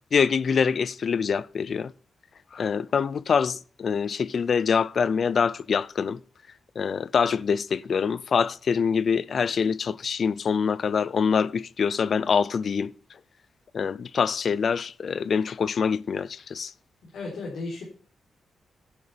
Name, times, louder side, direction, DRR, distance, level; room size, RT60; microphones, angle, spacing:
voice 1, 0.1-1.9 2.5-6.2 6.8-12.9 13.7-16.7, left 6 dB, 45° left, 0.4 m, -25 dB
voice 2, 17.0-17.8, left 3 dB, 70° left, 3.8 m, -35 dB
10.5 x 6.6 x 5.7 m
wide cardioid pair, 180°, 0 cm